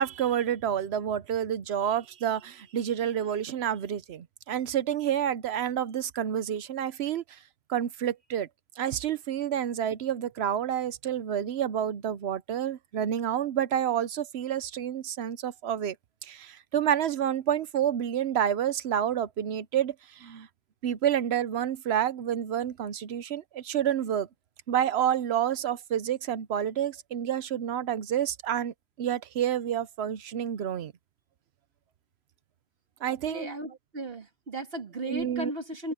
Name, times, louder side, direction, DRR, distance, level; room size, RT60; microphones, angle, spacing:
voice 1, 0.0-7.4 7.7-8.5 8.8-16.0 16.2-20.5 20.8-24.3 24.7-30.9 33.0-33.5 35.0-35.5, right 9 dB, 85° right, 1.0 m, -29 dB
voice 2, 33.1-35.9, right 1 dB, 65° right, 2.7 m, -36 dB
omnidirectional pair, 1.1 m